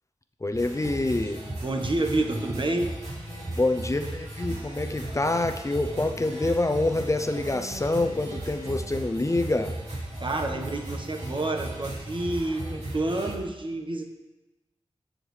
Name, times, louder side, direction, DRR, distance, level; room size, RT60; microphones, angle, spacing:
voice 1, 0.4-1.4 3.5-9.8, left 2 dB, 30° left, 7 dB, 0.6 m, -26 dB
sound 1, 0.5-13.3, right 1 dB, 80° right, 3.0 m, -36 dB
voice 2, 1.6-3.0 10.2-14.1, right 2 dB, 50° right, 4 dB, 1.2 m, -29 dB
15.0 x 6.5 x 3.3 m, 1.1 s
wide cardioid pair, 60°, 11 cm